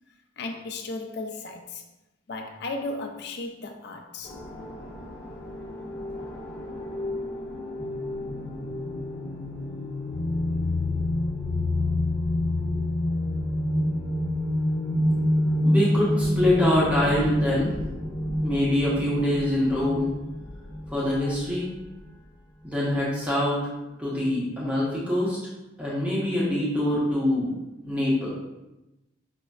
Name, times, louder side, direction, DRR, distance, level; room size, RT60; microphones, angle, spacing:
voice 1, 0.4-1.8 2.3-4.4, left 2 dB, 55° left, 0.4 m, -35 dB
sound 1, 4.2-21.4, left 1 dB, 20° left, 1.0 m, -28 dB
voice 2, 15.6-17.7 18.4-20.1 20.9-21.7 22.6-23.6 24.0-25.4 25.8-28.3, left 1 dB, 5° right, 0.7 m, -24 dB
5.1 x 2.2 x 2.3 m
head